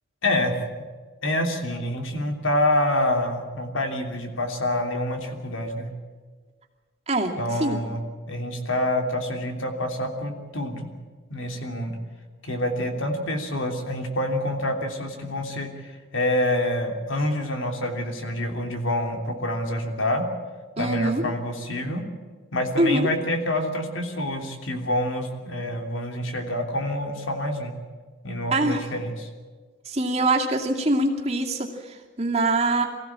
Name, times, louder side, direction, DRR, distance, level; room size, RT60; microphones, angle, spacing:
voice 1, 0.2-0.6 1.2-5.9 7.4-10.9 11.3-12.0 12.4-20.3 20.8-22.0 22.5-27.7 28.2-29.3, left 1 dB, 75° left, 4 dB, 3.2 m, -27 dB
voice 2, 20.8-21.2 22.8-23.1 28.5-28.8 29.9-32.9, right 2 dB, 30° right, 0 dB, 2.5 m, -23 dB
23.5 x 16.0 x 8.9 m, 1.4 s
head